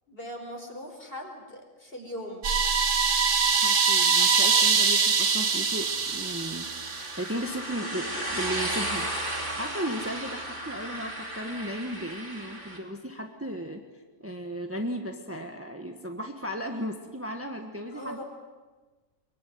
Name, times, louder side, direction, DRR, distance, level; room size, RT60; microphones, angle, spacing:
voice 1, 0.1-2.5 17.9-18.2, equal, 40° left, 3 dB, 4.8 m, -40 dB
sound 1, 2.4-7.3, right 5 dB, 65° right, 1.8 m, -23 dB
voice 2, 3.6-6.7 7.2-9.1 9.6-13.8 14.2-18.2, equal, 10° right, 4 dB, 1.5 m, -35 dB
sound 2, 4.8-12.8, right 1 dB, 35° right, 4.2 m, -35 dB
23.5 x 23.0 x 9.5 m, 1.3 s
omnidirectional pair, 1.5 m